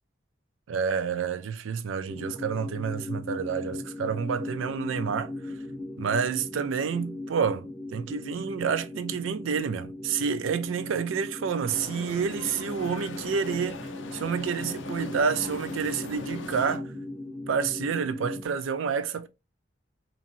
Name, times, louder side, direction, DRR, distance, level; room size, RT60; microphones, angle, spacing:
voice 1, 0.7-5.5 6.0-13.9 14.1-16.9 17.5-19.3, right 6 dB, 85° right, 0.4 m, -29 dB
sound 1, 2.1-18.5, left 2 dB, 10° left, 0.5 m, -38 dB
sound 2, 11.7-16.8, left 3 dB, 75° left, 0.5 m, -40 dB
2.9 x 2.7 x 2.5 m
head